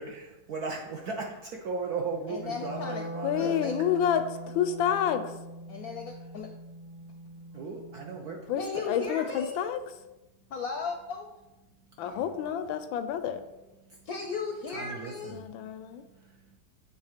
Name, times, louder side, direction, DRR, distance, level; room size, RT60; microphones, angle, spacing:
voice 1, 0.0-3.5 7.5-9.0 12.0-12.6 14.7-15.4 16.2-16.3, right 4 dB, 65° right, 0 dB, 1.0 m, -37 dB
voice 2, 2.3-3.0 3.4-3.8 5.7-6.5 8.6-9.6 10.5-11.3 14.1-15.4, left 5 dB, 65° left, 3 dB, 0.9 m, -36 dB
Wind instrument woodwind instrument, 2.3-8.6, right 1 dB, 25° right, 0.7 m, -42 dB
voice 3, 3.2-4.2 4.5-5.2 8.5-8.6 8.9-9.8 12.0-13.4 15.3-16.0, left 9 dB, 90° left, 9 dB, 1.4 m, -28 dB
8.2 x 3.4 x 5.0 m, 1.0 s
omnidirectional pair, 2.1 m